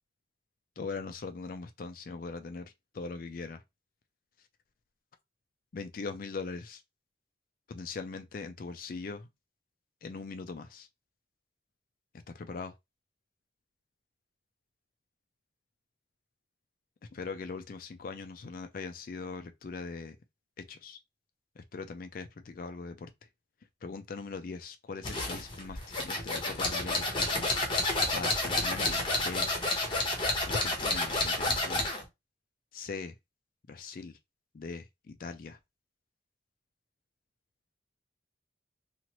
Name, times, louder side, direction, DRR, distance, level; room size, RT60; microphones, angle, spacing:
voice 1, 0.8-2.7 2.9-3.6 5.7-6.8 7.7-9.3 10.0-10.9 12.3-12.7 17.1-20.2 20.7-21.0 21.6-23.1 23.8-27.5 28.1-29.5 30.4-31.9 32.7-33.1 33.7-34.2 34.5-35.6, left 4 dB, 50° left, 0.4 m, -41 dB
sound 1, 25.0-32.0, left 2 dB, 30° left, 0.8 m, -30 dB
3.0 x 2.4 x 2.9 m
head